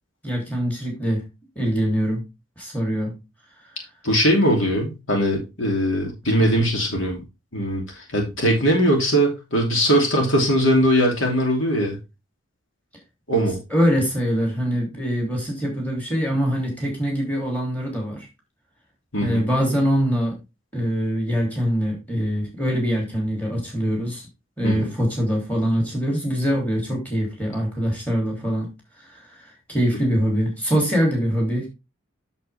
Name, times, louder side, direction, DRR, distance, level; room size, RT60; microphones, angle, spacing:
voice 1, 0.2-1.2 1.5-2.2 2.6-3.1 13.7-18.3 19.2-20.4 20.7-24.3 24.6-28.7 29.0-31.7, equal, 5° left, -1 dB, 3.1 m, -23 dB
voice 2, 4.0-7.2 7.5-12.0 13.3-13.6 19.1-19.4 24.6-24.9, equal, 75° left, 1 dB, 2.9 m, -20 dB
8.3 x 6.8 x 3.5 m, 0.25 s
head